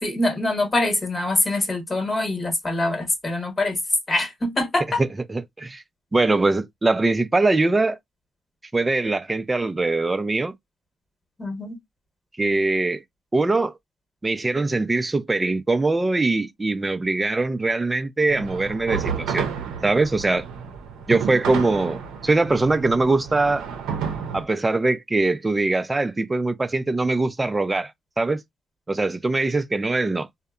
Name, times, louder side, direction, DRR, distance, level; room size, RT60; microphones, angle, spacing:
voice 1, 0.0-3.8 4.1-5.0 11.4-11.8, left 2 dB, 30° left, 1.1 m, -24 dB
voice 2, 5.3-5.8 6.1-8.0 8.7-10.5 12.4-13.0 13.3-13.7 14.2-19.5 19.8-20.4 21.1-23.6 24.3-27.9 28.2-28.4 28.9-30.3, right 2 dB, 20° right, 0.4 m, -22 dB
sound 1, 18.3-24.4, right 6 dB, 90° right, 0.5 m, -31 dB
2.7 x 2.0 x 2.4 m
cardioid pair, 90°, 0 cm